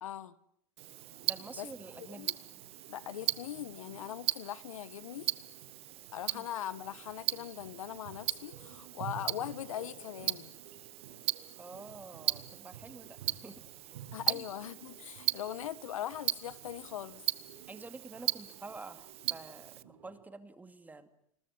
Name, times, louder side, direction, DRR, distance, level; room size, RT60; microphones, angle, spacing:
voice 1, 0.0-0.3 1.6-1.7 2.0-2.3 2.9-5.3 6.1-10.5 14.1-17.2, left 11 dB, 75° left, 1.6 m, -41 dB
Tick-tock, 0.8-19.8, right 16 dB, 35° right, 1.1 m, -38 dB
sound 1, 0.8-20.3, right 9 dB, 65° right, 7.3 m, -53 dB
voice 2, 1.2-2.3 6.3-6.5 11.6-13.9 14.3-14.5 17.7-21.1, right 3 dB, 10° right, 2.4 m, -49 dB
26.5 x 21.5 x 9.7 m
hypercardioid pair, 120°, 17 cm